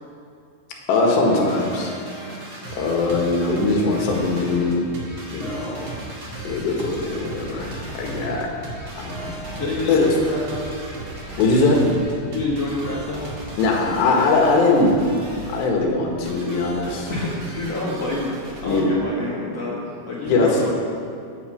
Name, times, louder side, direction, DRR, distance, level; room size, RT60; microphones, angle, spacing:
voice 1, 0.9-1.9 2.4-4.8 5.3-5.8 6.4-7.7 8.0-8.5 9.0-9.4 9.9-10.1 11.4-11.8 13.6-15.0 15.5-17.1 18.6-18.9 20.3-20.6, left 3 dB, 80° left, 0 dB, 3.8 m, -20 dB
sound 1, 1.1-18.8, right 2 dB, 45° right, 1.8 m, -36 dB
voice 2, 9.6-10.7 12.3-13.3 17.1-20.7, left 2 dB, 60° left, -5 dB, 1.7 m, -27 dB
15.5 x 9.6 x 5.0 m, 2.4 s
omnidirectional pair, 4.9 m